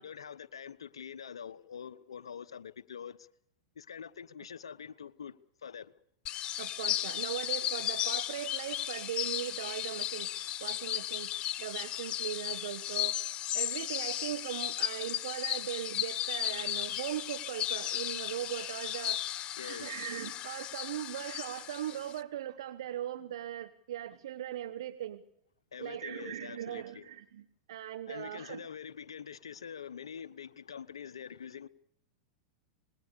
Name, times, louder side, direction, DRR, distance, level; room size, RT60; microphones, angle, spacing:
voice 1, 0.0-3.3 3.8-5.3 5.6-5.9 19.6-19.9 25.7-27.1 28.1-31.7, left 7 dB, 80° left, 1.0 m, -45 dB
sound 1, 6.3-22.2, left 12 dB, 35° left, 1.0 m, -35 dB
voice 2, 6.6-13.2 13.5-25.2 25.8-28.6, right 12 dB, 70° right, 1.2 m, -39 dB
26.0 x 20.5 x 6.9 m
hypercardioid pair, 100°, 3 cm